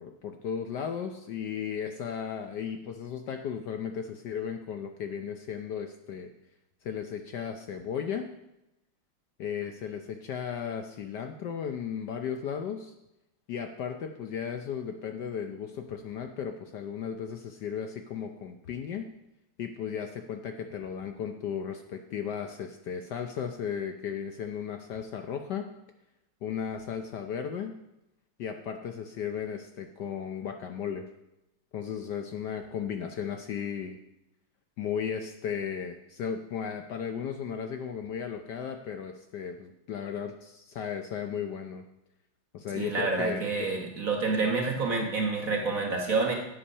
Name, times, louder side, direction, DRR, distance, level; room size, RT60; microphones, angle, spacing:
voice 1, 0.0-6.3 6.8-8.3 9.4-12.9 13.5-19.1 19.6-25.7 26.4-27.7 28.4-31.1 31.7-34.0 34.8-41.9 42.5-43.7, left 7 dB, 65° left, 5 dB, 1.1 m, -35 dB
voice 2, 42.7-46.3, right 4 dB, 45° right, 2 dB, 1.4 m, -28 dB
8.8 x 8.0 x 5.5 m, 0.91 s
omnidirectional pair, 2.3 m